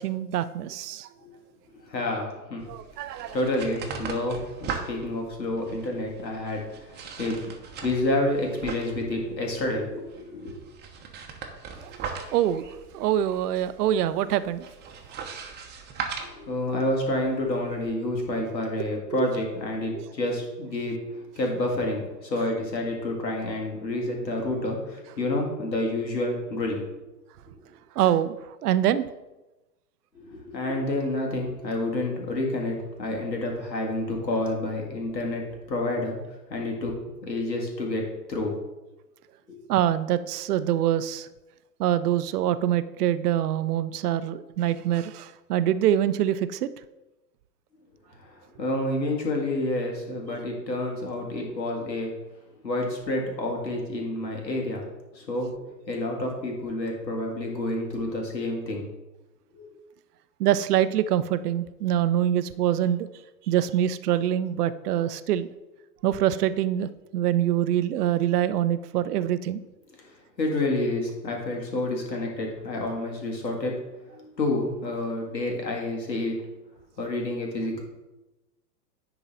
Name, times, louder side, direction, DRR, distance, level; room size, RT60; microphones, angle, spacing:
voice 1, 0.0-1.1 2.7-3.4 11.8-11.9 12.3-14.7 15.1-15.2 19.1-19.3 19.9-20.1 28.0-29.0 39.7-41.3 41.8-46.7 60.4-63.1 63.5-65.5 66.0-69.6, right 11 dB, 65° right, 14 dB, 0.6 m, -25 dB
voice 2, 1.9-2.6 3.0-7.4 7.8-10.6 16.2-27.1 30.1-36.2 36.5-36.9 37.3-38.6 39.5-39.6 48.2-52.1 52.6-54.9 55.1-58.9 59.5-59.7 70.0-73.7 74.2-76.4 77.0-77.8, left 1 dB, 85° left, 0 dB, 2.1 m, -29 dB
sound 1, 2.6-17.9, right 6 dB, 20° right, 0.9 m, -40 dB
10.0 x 3.9 x 4.1 m, 1.0 s
figure-of-eight pair, 105°, 50 cm